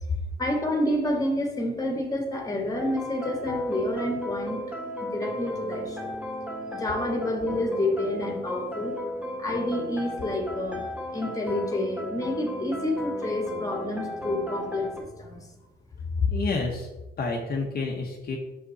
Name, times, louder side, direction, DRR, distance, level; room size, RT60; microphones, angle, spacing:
voice 1, 0.4-4.6 5.0-6.2 6.7-9.0 9.4-10.9 11.1-15.5, left 1 dB, 15° left, 2 dB, 1.7 m, -29 dB
sound 1, 2.8-15.0, equal, 5° right, 1.7 m, -34 dB
voice 2, 16.2-16.9 17.2-18.4, left 4 dB, 50° left, 1 dB, 1.0 m, -28 dB
6.1 x 5.2 x 4.0 m, 1.0 s
cardioid pair, 90°, 20 cm